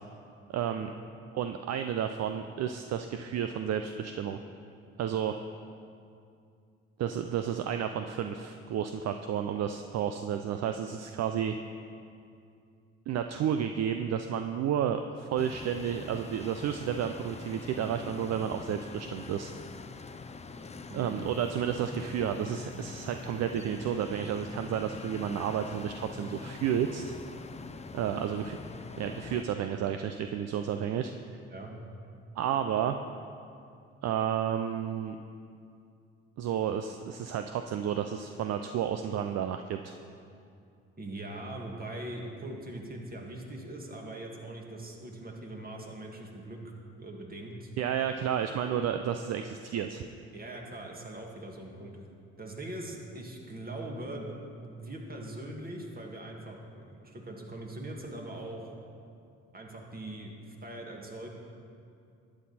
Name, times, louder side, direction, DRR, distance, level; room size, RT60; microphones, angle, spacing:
voice 1, 0.5-0.9 1.3-4.4 5.0-5.4 7.0-11.6 13.1-19.5 20.9-27.0 27.9-28.6 29.0-31.1 32.4-33.0 34.0-35.2 36.4-39.9 47.8-50.0, right 9 dB, 60° right, 7 dB, 0.5 m, -31 dB
sound 1, 15.4-29.4, left 4 dB, 20° left, 0.6 m, -44 dB
voice 2, 20.9-21.3 31.5-31.7 41.0-46.6 47.0-47.7 50.3-51.9 52.4-54.3 54.6-58.6 59.5-61.3, right 1 dB, 30° right, 0 dB, 2.1 m, -41 dB
11.5 x 8.8 x 4.2 m, 2.4 s
supercardioid pair, 60°, 30 cm